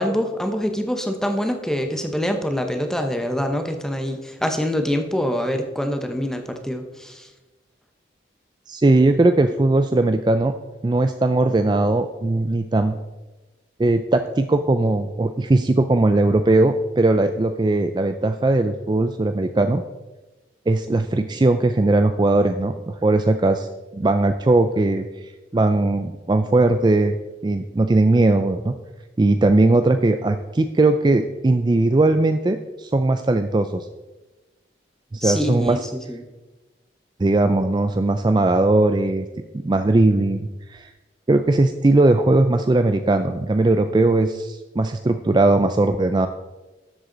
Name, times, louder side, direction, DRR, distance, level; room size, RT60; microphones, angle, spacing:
voice 1, 0.0-7.3 35.2-35.8 36.1-36.2, equal, 5° left, 5 dB, 0.9 m, -25 dB
voice 2, 8.7-10.5 10.8-12.9 13.8-19.8 20.7-23.7 23.9-28.7 29.2-33.9 35.1-35.8 37.2-39.3 39.6-40.9 41.3-46.3, right 2 dB, 25° right, 8 dB, 0.4 m, -19 dB
12.5 x 8.0 x 3.9 m, 1.1 s
head